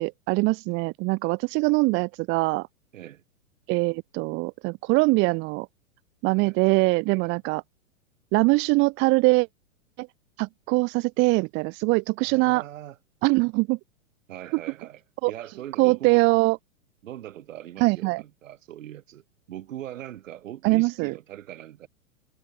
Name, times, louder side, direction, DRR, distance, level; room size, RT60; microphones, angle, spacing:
voice 1, 0.0-2.7 3.7-5.7 6.2-7.6 8.3-9.5 10.0-10.1 10.4-12.6 13.2-13.8 14.5-14.6 15.2-15.3 15.8-16.6 17.8-18.2 20.6-21.1, right 26 dB, 30° right, 0.7 m, -22 dB
voice 2, 12.2-13.0 14.3-15.0 15.3-16.2 17.0-21.9, right 12 dB, 65° right, 5.0 m, -41 dB
hypercardioid pair, 115°, 41 cm